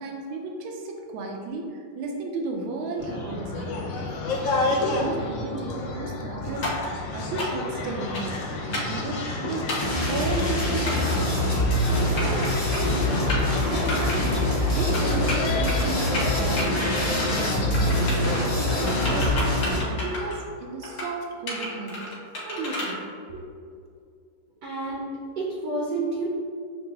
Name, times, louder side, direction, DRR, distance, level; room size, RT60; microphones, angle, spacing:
voice 1, 0.0-3.8 4.6-9.8 10.1-11.7 12.2-14.4 14.7-22.0 22.4-23.4, right 3 dB, 85° right, 1 dB, 1.4 m, -34 dB
sound 1, 3.0-19.3, left 2 dB, 75° left, 1.3 m, -31 dB
sound 2, 6.6-6.9 7.4-7.7 8.1-8.4 8.7-9.0 9.7-9.9 10.9-11.2 11.9-12.5 12.7-13.0 13.3-13.5 13.9-14.2 14.9-15.8 16.1-16.6 17.0-17.5 17.7-18.4 18.9-20.4 20.8-21.1 21.5-22.9, left 1 dB, 50° left, 1.0 m, -31 dB
sound 3, 9.8-19.8, left 1 dB, 30° left, 0.5 m, -25 dB
voice 2, 24.6-25.1 25.4-26.3, right 3 dB, 65° right, -4 dB, 1.0 m, -29 dB
6.5 x 2.3 x 2.8 m, 2.3 s
omnidirectional pair, 2.1 m